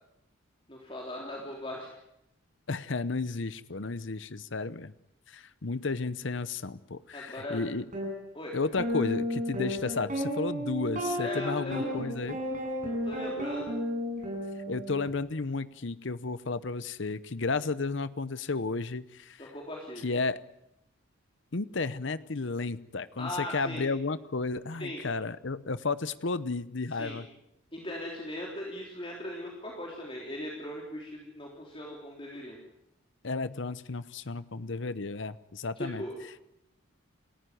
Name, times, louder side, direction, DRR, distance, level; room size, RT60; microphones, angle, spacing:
voice 1, 0.7-2.0 7.1-7.6 8.3-8.6 11.2-12.0 12.8-13.7 19.4-20.0 23.2-23.8 24.8-25.0 26.9-27.2 27.7-32.6 35.8-36.2, left 1 dB, 25° left, -2 dB, 3.6 m, -39 dB
voice 2, 2.7-4.9 5.3-7.9 8.5-12.4 14.7-19.5 20.0-20.4 21.5-27.3 33.2-36.0, left 3 dB, 60° left, 15 dB, 0.8 m, -33 dB
sound 1, 7.9-8.1 8.8-15.1, equal, 40° right, 7.8 m, -33 dB
29.0 x 14.5 x 9.4 m, 0.84 s
head